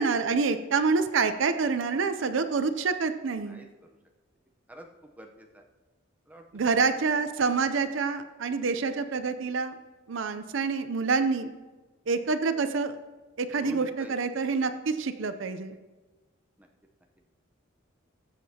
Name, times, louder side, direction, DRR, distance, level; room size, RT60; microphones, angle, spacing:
voice 1, 0.0-3.6 6.5-9.7 10.1-11.5 12.1-13.0 13.4-15.8, right 4 dB, 65° right, 10 dB, 0.5 m, -27 dB
voice 2, 3.4-4.0 4.7-5.6 6.3-6.8 13.5-14.1 16.6-16.7, right 1 dB, 5° right, 2 dB, 0.8 m, -45 dB
20.0 x 7.4 x 2.8 m, 1.2 s
head